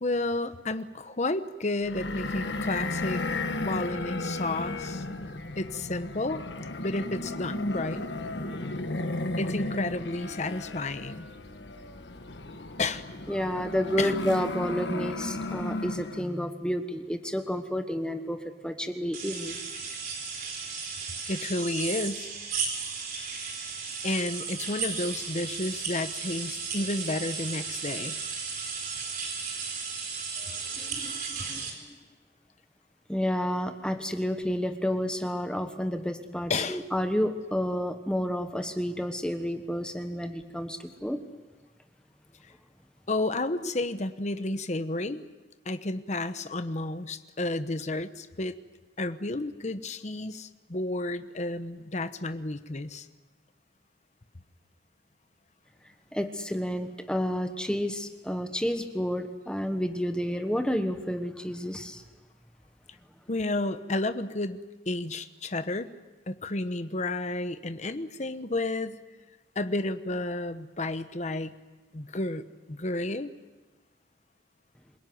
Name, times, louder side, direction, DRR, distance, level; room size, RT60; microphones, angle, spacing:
voice 1, 0.0-3.2 3.6-5.0 5.6-6.4 6.8-8.1 9.4-11.3 12.8-13.1 14.0-14.1 21.3-22.3 24.0-28.2 36.5-36.8 43.1-45.2 45.6-48.6 49.0-53.1 63.3-65.9 66.3-69.0 69.5-71.5 71.9-72.4 72.7-73.3, left 2 dB, 40° left, 11 dB, 1.0 m, -31 dB
sound 1, 1.8-16.4, left 2 dB, 70° left, 1.4 m, -35 dB
voice 2, 13.3-19.6 30.8-31.6 33.1-41.2 56.1-62.0, equal, 5° left, 7 dB, 1.2 m, -30 dB
sound 2, 19.1-31.7, right 5 dB, 50° right, 4.7 m, -35 dB
27.0 x 17.5 x 9.4 m, 1.2 s
head